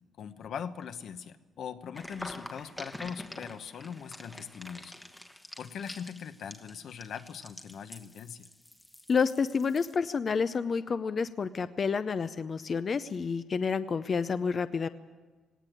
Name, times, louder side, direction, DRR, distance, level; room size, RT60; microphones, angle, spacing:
voice 1, 0.2-4.9 5.6-8.5, left 7 dB, 60° left, 10 dB, 1.1 m, -41 dB
sound 1, 1.9-10.0, left 1 dB, 10° left, 1.1 m, -47 dB
voice 2, 9.1-14.9, left 5 dB, 35° left, 12 dB, 0.6 m, -29 dB
18.5 x 18.0 x 9.3 m, 1.3 s
cardioid pair, 140°, 0 cm